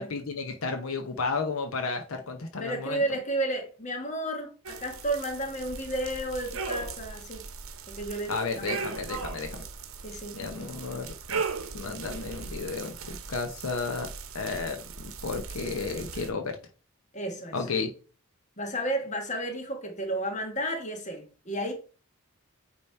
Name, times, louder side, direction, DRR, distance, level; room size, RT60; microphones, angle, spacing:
voice 1, 0.0-3.0 8.3-9.6 10.3-11.4 11.7-12.9 13.3-14.1 14.3-16.6 17.5-17.9, left 4 dB, 80° left, 0.8 m, -33 dB
voice 2, 2.6-7.4 7.9-8.8 10.0-10.4 17.1-17.6 18.6-21.7, right 1 dB, 35° left, 1.4 m, -32 dB
sound 1, 4.6-16.3, right 5 dB, 75° right, 0.8 m, -38 dB
8.7 x 3.1 x 4.4 m
head